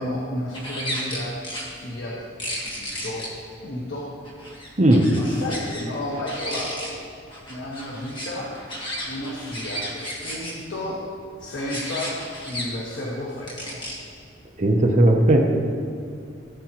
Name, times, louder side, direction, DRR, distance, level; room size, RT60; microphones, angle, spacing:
voice 1, 0.0-1.3 1.7-2.1 2.6-3.3 3.6-4.1 5.1-7.0 7.5-8.5 9.1-11.0 11.4-12.2 12.4-13.8, left 1 dB, 65° left, -5 dB, 1.4 m, -32 dB
sound 1, 0.5-1.7 2.4-3.3 4.2-5.8 6.1-6.9 7.3-10.5 11.6-12.6 13.5-14.0, equal, 25° left, 1.5 m, -33 dB
voice 2, 4.8-5.1 14.6-15.4, right 1 dB, 40° right, 2 dB, 0.7 m, -16 dB
15.0 x 7.4 x 3.0 m, 2.4 s
head